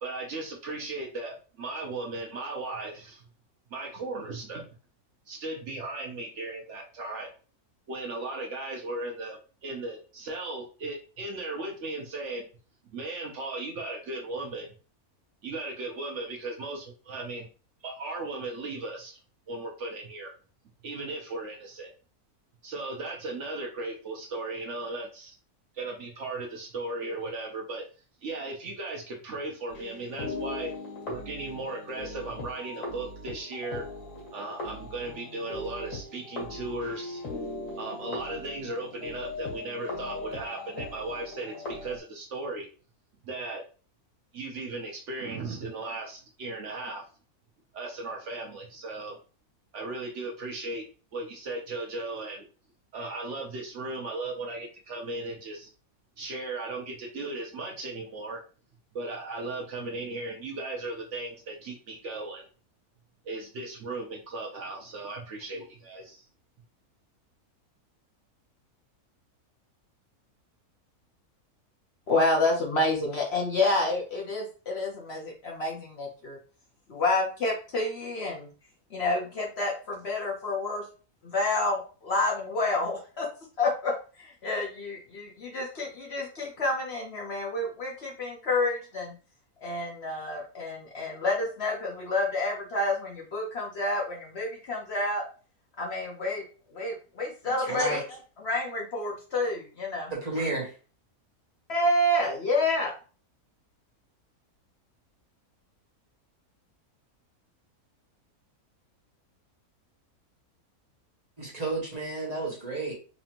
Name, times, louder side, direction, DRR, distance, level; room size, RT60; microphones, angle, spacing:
voice 1, 0.0-3.2 3.7-4.7 5.3-7.3 7.9-12.4 12.9-14.7 15.4-17.5 17.8-19.2 19.5-20.3 20.8-21.9 22.6-25.3 25.7-27.8 28.2-30.7 31.1-33.8 34.3-37.2 37.8-42.7 43.2-43.6 44.3-47.0 47.7-49.2 49.7-50.8 51.1-52.4 52.9-55.7 56.2-58.4 58.9-62.5 63.2-66.3, right 2 dB, 60° right, 1 dB, 0.9 m, -36 dB
sound 1, 29.7-42.0, left 2 dB, 90° left, 2.2 m, -39 dB
voice 2, 72.1-76.4 76.9-78.5 78.9-80.8 81.2-83.3 83.6-83.9 84.2-89.1 89.6-95.2 95.8-96.4 96.7-98.0 98.4-100.5 101.7-102.9, left 2 dB, 50° left, -1 dB, 0.9 m, -29 dB
voice 3, 97.4-98.0 100.1-100.7 111.4-112.9, right 2 dB, 30° right, -3 dB, 1.0 m, -32 dB
4.2 x 2.7 x 2.9 m, 0.37 s
omnidirectional pair, 1.6 m